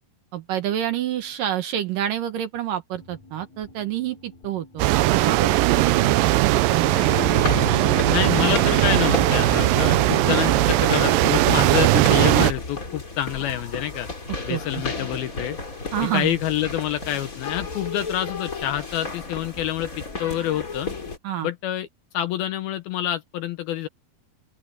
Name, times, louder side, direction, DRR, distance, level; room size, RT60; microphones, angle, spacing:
voice 1, 0.3-7.1 14.5-14.8 15.9-16.3 21.2-21.5, right 11 dB, 65° right, 2.6 m, -28 dB
sound 1, 2.9-9.9, left 2 dB, 45° left, 7.4 m, -41 dB
sound 2, 4.8-12.5, right 18 dB, 85° right, 2.0 m, -19 dB
sound 3, 5.2-21.2, left 3 dB, 20° left, 3.3 m, -33 dB
voice 2, 8.1-14.1 14.5-15.6 16.1-20.9 21.4-21.9 22.1-23.9, left 12 dB, 75° left, 2.6 m, -27 dB
open air
omnidirectional pair, 4.7 m